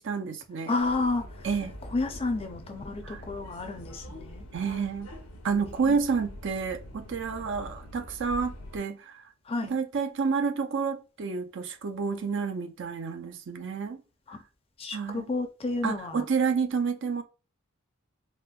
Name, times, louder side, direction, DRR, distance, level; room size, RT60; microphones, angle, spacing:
voice 1, 0.0-0.7 1.4-1.8 3.0-3.2 4.5-5.1 5.4-9.3 9.6-14.0 14.9-15.2 15.8-17.2, right 5 dB, 60° right, 0.5 m, -29 dB
voice 2, 0.7-1.5 1.9-4.4 5.8-6.0 9.5-9.8 14.3-14.4 14.8-16.3, left 3 dB, 25° left, 0.4 m, -31 dB
Subway metro underground, 0.8-8.8, equal, 90° left, 0.8 m, -44 dB
4.2 x 2.1 x 2.3 m
head